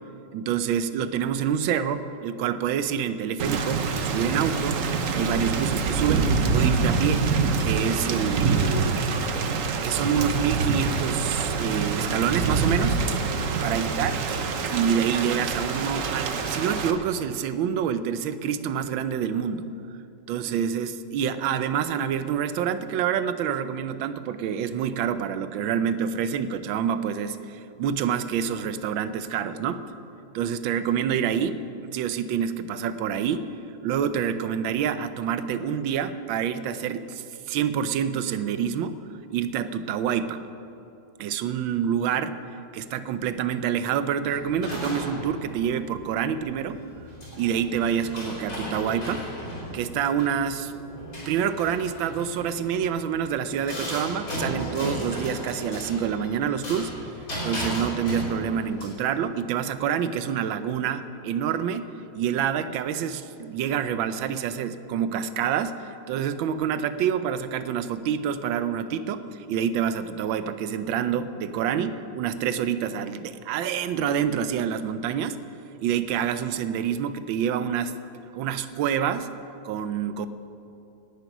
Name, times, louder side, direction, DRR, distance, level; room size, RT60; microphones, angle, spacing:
voice 1, 0.3-4.8 5.1-7.2 7.6-9.0 9.8-13.0 13.6-14.1 14.7-19.7 20.3-29.9 30.3-31.6 31.9-33.5 33.8-39.0 39.3-40.4 41.2-42.3 42.7-46.8 47.4-49.2 49.7-50.7 51.3-56.9 57.4-61.9 62.1-75.4 75.8-77.9 78.3-79.3 79.6-80.3, right 8 dB, 85° right, 12 dB, 1.4 m, -27 dB
Thunder / Rain, 3.4-16.9, right 4 dB, 50° right, 1.1 m, -25 dB
sound 1, 44.2-58.8, equal, 85° left, 5.6 m, -36 dB
18.0 x 10.5 x 6.0 m, 2.7 s
omnidirectional pair, 2.1 m